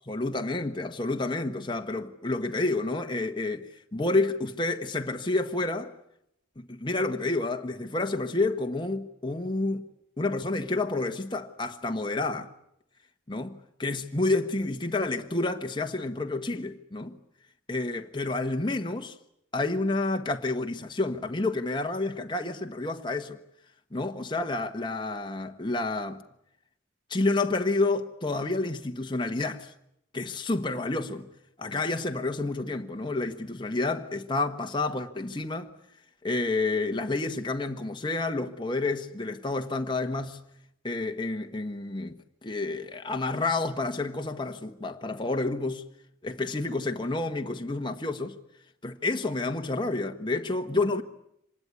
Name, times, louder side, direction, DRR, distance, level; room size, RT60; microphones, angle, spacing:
voice 1, 0.1-5.9 6.6-9.8 10.2-12.5 13.3-17.2 17.7-19.2 19.5-23.4 23.9-26.2 27.1-29.7 30.1-31.3 31.6-35.7 36.2-40.4 40.8-45.8 46.2-48.4 48.8-51.0, left 2 dB, 25° left, 1.3 m, -29 dB
26.0 x 19.5 x 9.6 m
head